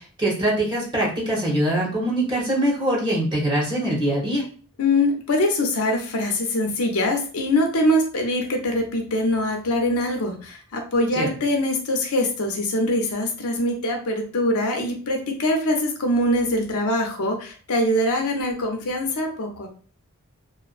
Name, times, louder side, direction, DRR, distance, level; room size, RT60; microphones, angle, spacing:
voice 1, 0.2-4.4 11.2-11.3, right 1 dB, 20° right, -4 dB, 1.0 m, -23 dB
voice 2, 4.8-19.7, left 1 dB, 70° left, 2 dB, 0.6 m, -23 dB
2.5 x 2.1 x 2.4 m, 0.41 s
head